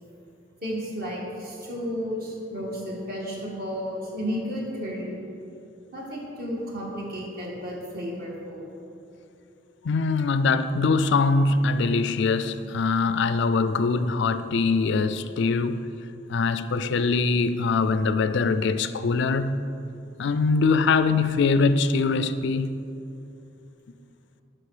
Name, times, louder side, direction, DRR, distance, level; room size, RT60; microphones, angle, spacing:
voice 1, 0.6-5.2 5.9-8.7, equal, 50° right, -3 dB, 2.0 m, -32 dB
voice 2, 9.8-15.8 16.3-19.6 20.2-22.7, left 4 dB, 65° left, 12 dB, 0.4 m, -23 dB
10.5 x 6.0 x 4.9 m, 2.7 s
head